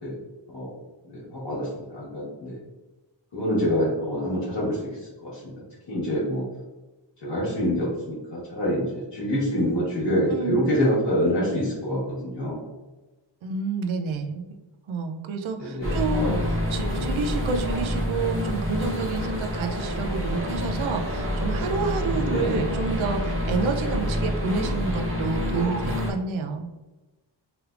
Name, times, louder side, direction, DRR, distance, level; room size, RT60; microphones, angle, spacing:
voice 1, 1.0-2.6 3.3-5.4 5.9-6.4 7.2-12.7 15.6-16.5 17.0-17.1 22.2-22.5, equal, 65° left, -8 dB, 1.1 m, -26 dB
voice 2, 10.3-10.6 13.4-14.4 14.9-26.7, right 4 dB, 85° right, 5 dB, 0.5 m, -29 dB
sound 1, 15.8-26.1, left 1 dB, 30° right, 0.8 m, -27 dB
3.3 x 3.0 x 2.3 m, 1.1 s
wide cardioid pair, 130°, 46 cm